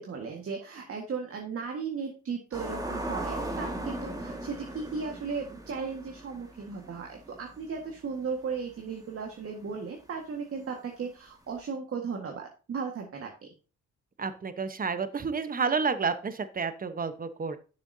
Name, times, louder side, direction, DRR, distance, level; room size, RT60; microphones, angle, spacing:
voice 1, 0.0-13.5, right 5 dB, 50° right, 2 dB, 1.7 m, -36 dB
sound 1, 2.5-8.0 8.4-8.5 11.6-11.7, right 1 dB, 10° right, 1.8 m, -38 dB
voice 2, 14.2-17.6, right 5 dB, 30° right, 11 dB, 1.0 m, -30 dB
10.5 x 6.8 x 2.7 m, 0.34 s
cardioid pair, 90°, 30 cm